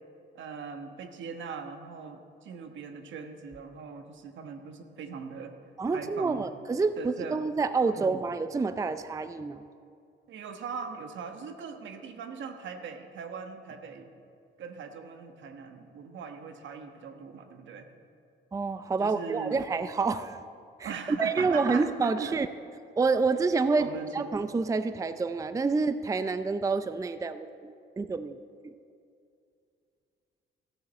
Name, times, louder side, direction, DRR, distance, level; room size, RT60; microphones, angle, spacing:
voice 1, 0.3-5.5 5.9-6.5 7.0-7.5 7.9-8.1 10.3-14.1 14.6-17.9 19.0-19.6 20.8-22.4 23.8-24.4, right 5 dB, 70° right, 6 dB, 1.3 m, -40 dB
voice 2, 5.8-9.7 18.5-20.4 20.8-22.5 23.0-28.4 28.6-28.7, right 4 dB, 15° right, 12 dB, 0.4 m, -28 dB
15.0 x 7.4 x 7.3 m, 2.5 s
cardioid pair, 90°, 20 cm